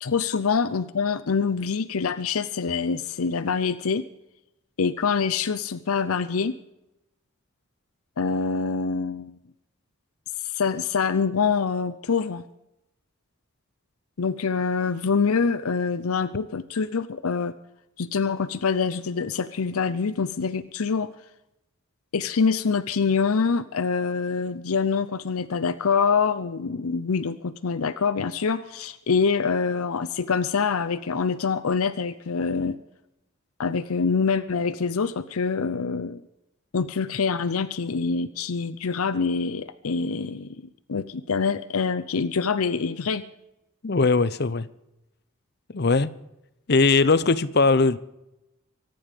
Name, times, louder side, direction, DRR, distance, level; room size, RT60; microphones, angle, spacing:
voice 1, 0.0-4.0 4.8-6.5 8.2-9.4 10.4-12.4 14.2-17.5 18.0-21.1 22.1-32.8 33.6-36.2 36.7-40.6 40.9-43.2, left 5 dB, 90° left, 0.7 m, -25 dB
voice 2, 43.8-44.7 45.7-46.2 46.7-48.0, left 3 dB, 50° left, 0.7 m, -20 dB
24.5 x 9.4 x 5.2 m
head